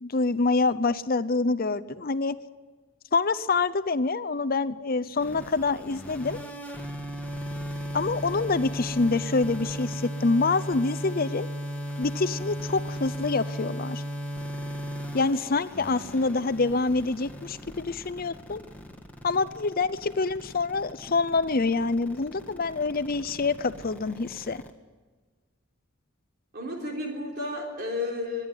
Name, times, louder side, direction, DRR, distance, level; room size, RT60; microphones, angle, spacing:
voice 1, 0.0-2.4 3.1-6.4 7.9-11.5 12.0-14.0 15.1-18.6 19.2-24.6, left 3 dB, 50° left, 14 dB, 0.7 m, -26 dB
sound 1, 5.2-24.7, equal, 10° left, 2.0 m, -36 dB
voice 2, 26.5-28.5, left 2 dB, 55° right, -1 dB, 3.7 m, -32 dB
25.5 x 11.0 x 9.4 m, 1.4 s
head